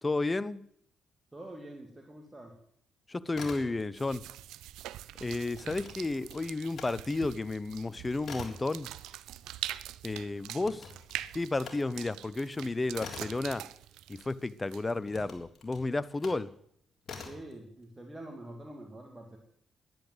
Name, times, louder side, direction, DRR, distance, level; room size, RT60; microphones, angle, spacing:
voice 1, 0.0-0.6 3.1-4.2 5.2-8.9 10.0-10.9 11.3-13.6 14.1-16.5, left 2 dB, 25° left, 0.7 m, -32 dB
voice 2, 1.3-2.5 17.2-19.4, right 1 dB, 20° right, 2.4 m, -46 dB
sound 1, 3.3-4.2 4.5-6.9 7.3-14.4 15.0-16.5 17.0-17.5, left 5 dB, 60° left, 3.5 m, -47 dB
sound 2, 3.9-15.1, right 13 dB, 85° right, 0.4 m, -44 dB
10.5 x 10.5 x 7.9 m
supercardioid pair, 65°, 0 cm